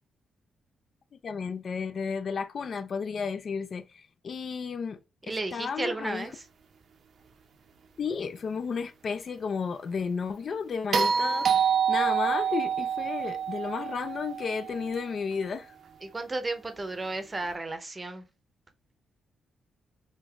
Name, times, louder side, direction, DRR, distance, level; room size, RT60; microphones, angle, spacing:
voice 1, 1.2-5.0 5.3-6.3 8.0-15.7, left 5 dB, 45° left, 0.3 m, -33 dB
voice 2, 5.2-6.3 16.0-18.2, right 2 dB, 20° right, 0.7 m, -33 dB
sound 1, 10.9-15.2 17.4-17.5, right 7 dB, 55° right, 0.6 m, -27 dB
3.7 x 2.5 x 3.4 m
cardioid pair, 125°, 0 cm